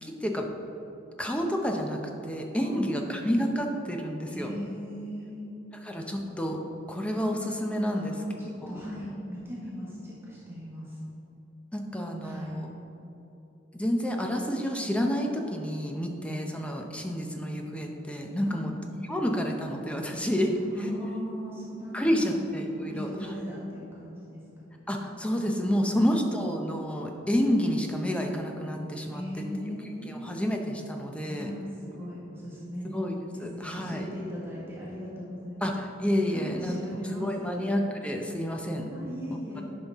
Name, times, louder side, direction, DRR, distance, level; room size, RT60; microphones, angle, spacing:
voice 1, 0.0-0.5 1.2-2.0 2.3-4.5 5.8-6.6 6.9-8.1 8.7-8.8 11.7-12.7 13.7-18.7 19.1-20.6 21.9-23.1 24.9-29.2 30.1-31.5 32.8-34.0 35.6-36.8 37.2-38.9, equal, 5° left, 2 dB, 0.6 m, -29 dB
voice 2, 2.5-3.2 4.3-5.5 7.9-11.0 12.2-12.6 18.4-18.7 20.5-22.3 22.7-24.7 25.7-26.4 29.1-30.3 31.2-32.9 33.3-35.6 36.3-37.6 38.9-39.6, left 1 dB, 15° right, -8 dB, 1.5 m, -38 dB
10.5 x 5.5 x 3.5 m, 3.0 s
head